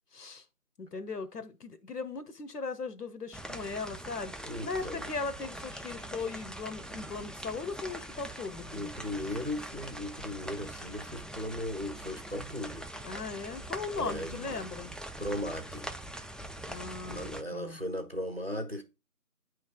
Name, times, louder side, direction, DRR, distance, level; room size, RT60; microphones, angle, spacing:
voice 1, 0.1-0.4 0.8-8.9 13.0-14.9 16.7-17.8, left 4 dB, 85° left, 1.0 m, -38 dB
sound 1, 3.3-17.4, right 1 dB, ahead, 0.3 m, -43 dB
voice 2, 4.4-5.0 8.7-13.0 14.0-14.6 15.2-15.9 17.0-18.8, left 1 dB, 40° right, 0.6 m, -37 dB
8.8 x 3.2 x 3.5 m
figure-of-eight pair, 180°, 46 cm